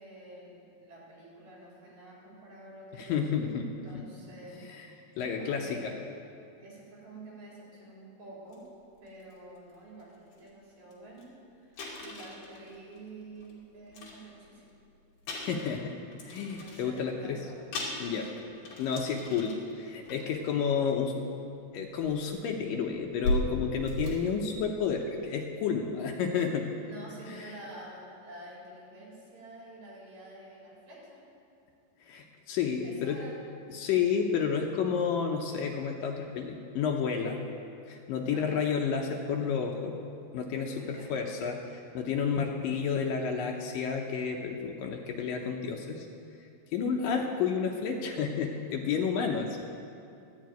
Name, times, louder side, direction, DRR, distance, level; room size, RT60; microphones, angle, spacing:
voice 1, 0.0-3.5 3.8-4.6 5.0-6.0 6.6-8.6 9.0-11.3 11.6-14.7 16.5-17.6 18.2-18.5 26.8-31.2 32.8-33.4 38.3-38.7 40.6-41.1, right 1 dB, 45° right, -5 dB, 4.9 m, -49 dB
voice 2, 3.0-3.7 4.0-4.1 4.8-4.9 5.2-5.9 15.3-15.9 16.2-17.5 18.0-18.3 18.8-21.2 21.7-26.7 27.3-27.5 32.0-33.2 33.7-37.4 37.9-39.9 40.3-46.1 46.7-49.6, left 6 dB, 85° left, 1 dB, 1.9 m, -31 dB
sound 1, 8.5-8.6 9.1-9.3 10.0-10.1 10.3-10.5 10.9-11.0 11.2-11.3 11.8-13.5 13.9-14.8 15.2-16.9 17.4-17.5 17.7-19.7 20.0-20.4 21.5-21.6 22.0-25.0, left 1 dB, 55° left, 3.6 m, -37 dB
12.0 x 7.5 x 9.1 m, 2.6 s
omnidirectional pair, 4.9 m